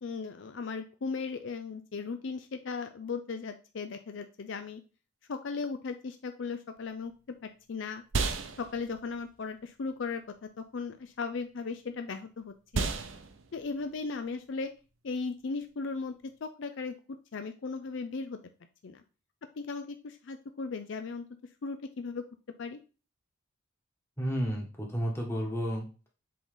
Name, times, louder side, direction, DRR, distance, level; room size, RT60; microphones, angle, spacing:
voice 1, 0.0-4.8 5.3-7.1 7.4-8.0 8.6-12.9 13.5-14.7 15.0-18.4 18.8-19.0 19.6-21.2 21.6-22.3 22.6-22.8, left 4 dB, 60° left, 8 dB, 0.4 m, -37 dB
sound 1, 6.8-16.4, right 4 dB, 70° right, 0.7 m, -38 dB
voice 2, 24.2-26.1, equal, 10° left, -1 dB, 1.7 m, -32 dB
7.5 x 3.9 x 3.8 m, 0.34 s
head